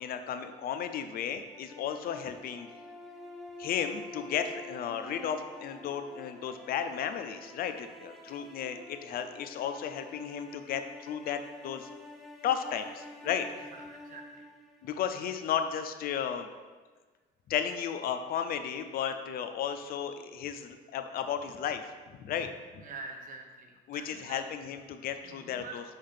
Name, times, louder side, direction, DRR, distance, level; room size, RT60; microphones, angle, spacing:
voice 1, 0.0-2.7 3.6-11.9 12.4-13.5 14.8-16.5 17.5-21.8 22.1-22.5 23.9-25.8, left 8 dB, 60° left, 8 dB, 0.5 m, -34 dB
sound 1, 1.4-15.5, left 1 dB, ahead, 0.7 m, -48 dB
voice 2, 13.5-14.5 22.8-24.5 25.2-25.8, right 3 dB, 55° right, 3 dB, 0.9 m, -46 dB
5.6 x 3.5 x 5.6 m, 1.4 s
cardioid pair, 110°, 17 cm